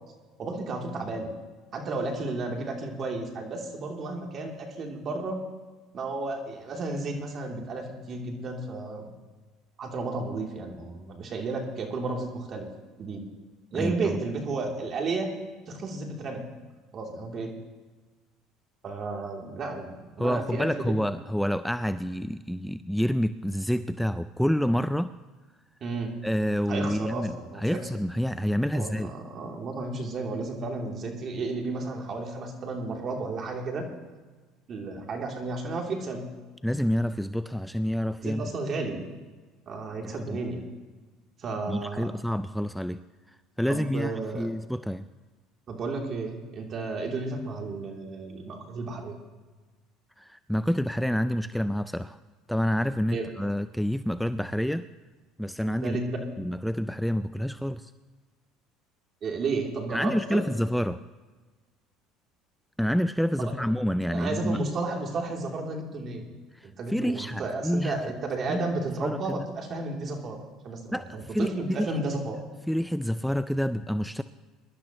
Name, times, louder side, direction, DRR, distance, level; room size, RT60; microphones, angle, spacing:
voice 1, 0.4-1.3 1.7-5.5 5.9-9.2 9.8-12.7 13.0-13.2 13.7-15.3 15.7-16.4 16.9-17.5 18.8-20.9 25.8-26.1 26.7-27.9 28.7-33.9 34.7-36.3 38.2-39.0 39.7-40.6 41.4-42.1 43.7-44.5 45.7-49.2 53.1-53.3 55.8-56.2 59.2-60.4 63.4-63.6 64.1-66.3 66.6-72.4, right 3 dB, 45° right, 1 dB, 3.1 m, -33 dB
voice 2, 13.8-14.2 20.2-25.1 26.2-27.3 27.6-29.1 36.6-38.5 40.0-40.4 41.7-43.0 43.6-45.1 50.2-52.2 52.5-54.9 55.4-56.0 56.4-57.9 59.9-61.0 62.8-64.6 66.5-68.1 68.5-68.6 69.0-69.5 70.9-71.9 72.7-74.2, equal, ahead, 12 dB, 0.4 m, -28 dB
23.0 x 12.0 x 3.1 m, 1.3 s
supercardioid pair, 85°, 0 cm